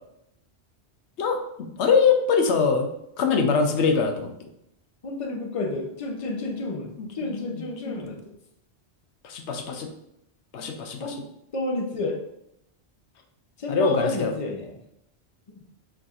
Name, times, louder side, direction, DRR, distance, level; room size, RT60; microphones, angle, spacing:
voice 1, 1.2-2.9 3.2-4.5 7.0-7.1 7.4-8.2 9.2-9.9 10.5-11.2 13.7-14.3, left 5 dB, 80° left, 5 dB, 0.9 m, -23 dB
voice 2, 5.0-8.2 11.0-11.2 11.5-12.2 13.6-14.7 15.5-15.6, left 2 dB, 35° left, 2 dB, 0.6 m, -30 dB
4.7 x 4.1 x 2.4 m, 0.80 s
omnidirectional pair, 1.1 m